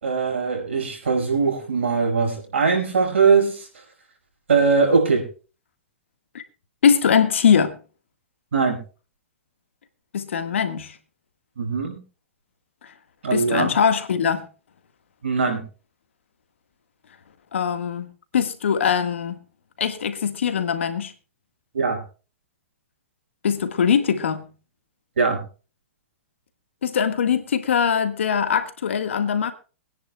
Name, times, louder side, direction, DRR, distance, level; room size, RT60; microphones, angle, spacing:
voice 1, 0.0-3.7 4.5-5.3 8.5-8.8 11.6-12.0 13.2-13.7 15.2-15.6 21.7-22.0 25.2-25.4, right 5 dB, 80° right, 5.6 m, -21 dB
voice 2, 6.8-7.8 10.1-11.0 13.3-14.5 17.5-19.4 19.8-21.1 23.4-24.5 26.8-29.5, left 7 dB, 80° left, 1.7 m, -22 dB
24.0 x 10.0 x 2.3 m
hypercardioid pair, 120°, 7 cm